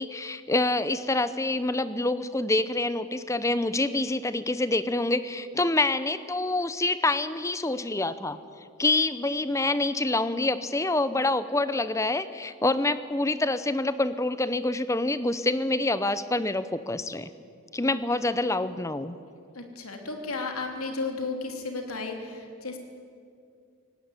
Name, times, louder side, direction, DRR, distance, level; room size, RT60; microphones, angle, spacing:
voice 1, 0.0-8.4 8.8-17.3 17.7-19.2, left 2 dB, 15° left, 13 dB, 0.6 m, -26 dB
voice 2, 19.5-22.8, left 3 dB, 85° left, 3 dB, 3.0 m, -33 dB
18.0 x 17.5 x 9.7 m, 2.3 s
head